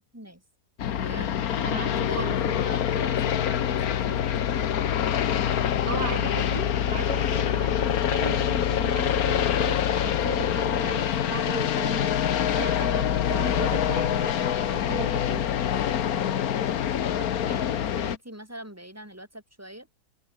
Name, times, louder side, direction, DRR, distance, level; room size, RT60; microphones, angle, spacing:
sound 1, 0.8-18.2, left 9 dB, 65° left, 1.4 m, -25 dB
voice 1, 0.9-1.3 1.9-4.7 17.2-19.9, right 1 dB, 10° right, 5.9 m, -42 dB
voice 2, 1.6-2.6 5.8-12.1 12.6-15.5, right 6 dB, 75° right, 2.5 m, -37 dB
omnidirectional pair, 1.8 m